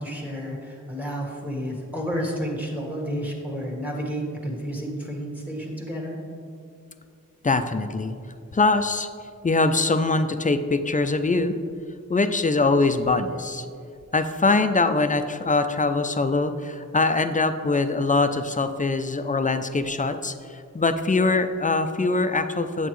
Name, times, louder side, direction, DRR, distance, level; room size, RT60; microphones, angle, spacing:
voice 1, 0.0-6.2, equal, 5° right, -1 dB, 1.5 m, -31 dB
voice 2, 7.4-8.1 8.5-9.1 9.4-11.6 12.1-13.7 14.1-22.9, left 3 dB, 25° left, 9 dB, 0.4 m, -23 dB
8.1 x 7.9 x 3.1 m, 2.3 s
wide cardioid pair, 80°, 31 cm